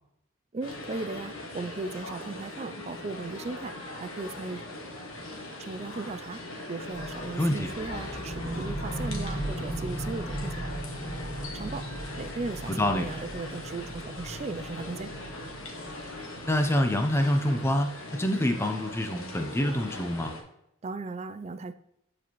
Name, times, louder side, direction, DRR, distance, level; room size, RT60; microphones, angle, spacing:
voice 1, 0.5-3.7 4.0-4.6 5.6-6.4 6.7-10.6 11.5-11.8 12.2-15.1 20.8-21.7, right 3 dB, 30° right, 11 dB, 0.3 m, -37 dB
sound 1, 0.6-20.4, left 2 dB, 75° left, 1.4 m, -40 dB
sound 2, 6.9-17.0, right 1 dB, 40° left, 2.2 m, -37 dB
voice 2, 7.4-7.7 12.7-13.1 16.4-20.3, left 1 dB, 10° left, 5 dB, 0.6 m, -26 dB
9.6 x 4.3 x 3.0 m, 0.80 s
head